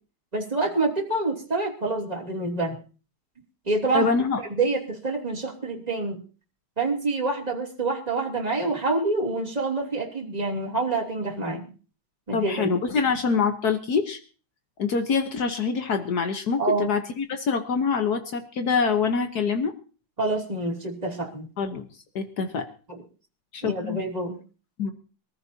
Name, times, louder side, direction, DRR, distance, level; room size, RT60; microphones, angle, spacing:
voice 1, 0.3-2.8 3.7-4.1 4.5-6.2 6.8-11.7 12.3-12.7 16.6-16.9 20.2-21.5 22.9-23.0 23.6-24.4, right 3 dB, 15° right, -1 dB, 2.8 m, -27 dB
voice 2, 3.9-4.4 12.3-14.2 14.8-19.7 21.6-21.9 22.1-22.7 23.5-24.0 24.8-24.9, left 5 dB, 80° left, 7 dB, 0.8 m, -25 dB
24.5 x 14.5 x 2.8 m, 0.37 s
omnidirectional pair, 3.4 m